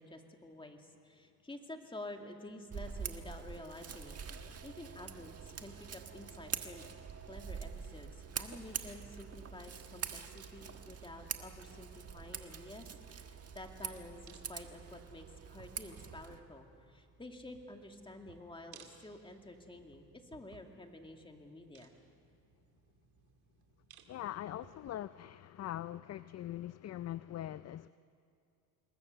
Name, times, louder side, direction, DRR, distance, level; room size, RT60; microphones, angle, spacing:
voice 1, 0.0-7.0 7.3-21.9, left 2 dB, 15° left, 4 dB, 2.3 m, -50 dB
Scissors, 2.7-16.4, right 7 dB, 40° right, 1.5 m, -45 dB
sound 1, 5.6-25.0, right 7 dB, 75° right, 2.4 m, -63 dB
voice 2, 24.1-27.9, left 13 dB, 40° left, 15 dB, 0.5 m, -42 dB
27.5 x 21.0 x 6.6 m, 2.4 s
cardioid pair, 105°, 39 cm